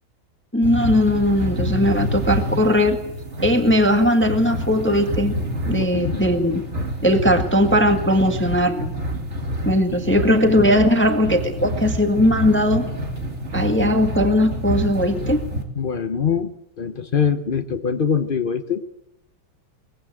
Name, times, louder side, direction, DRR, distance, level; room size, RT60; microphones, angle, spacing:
voice 1, 0.5-3.0 3.4-5.4 5.7-6.6 7.0-8.9 9.6-12.8 13.5-15.4, left 1 dB, 5° left, 6 dB, 1.5 m, -18 dB
sound 1, 0.6-15.6, right 1 dB, 30° right, 2.6 m, -28 dB
voice 2, 5.7-6.2 15.8-18.8, left 6 dB, 60° left, 10 dB, 0.5 m, -23 dB
22.5 x 19.5 x 7.8 m, 0.89 s
omnidirectional pair, 2.4 m